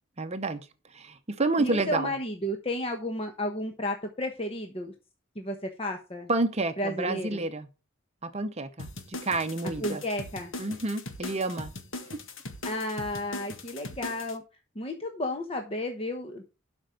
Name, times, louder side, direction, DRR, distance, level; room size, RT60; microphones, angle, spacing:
voice 1, 0.2-2.1 6.3-7.7 8.2-10.0 10.6-11.7 12.1-12.2, right 2 dB, 30° right, 0.8 m, -30 dB
voice 2, 1.6-4.9 5.3-6.3 6.8-7.5 9.8-10.5 12.6-14.4 14.7-16.4, left 1 dB, 30° left, 1.1 m, -32 dB
sound 1, 8.8-14.4, left 2 dB, 65° left, 1.6 m, -40 dB
12.0 x 5.3 x 5.1 m
head